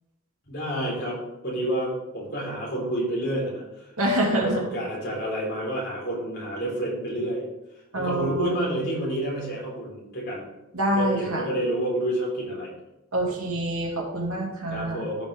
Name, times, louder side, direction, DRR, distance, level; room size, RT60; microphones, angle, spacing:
voice 1, 0.5-1.2 1.4-3.6 4.3-7.4 8.0-10.4 10.9-12.7 14.7-15.3, right 1 dB, 50° left, -3 dB, 3.8 m, -29 dB
voice 2, 4.0-4.6 7.9-8.6 10.7-11.4 13.1-15.1, right 1 dB, 75° right, -1 dB, 2.6 m, -26 dB
15.0 x 5.3 x 3.5 m, 0.95 s
head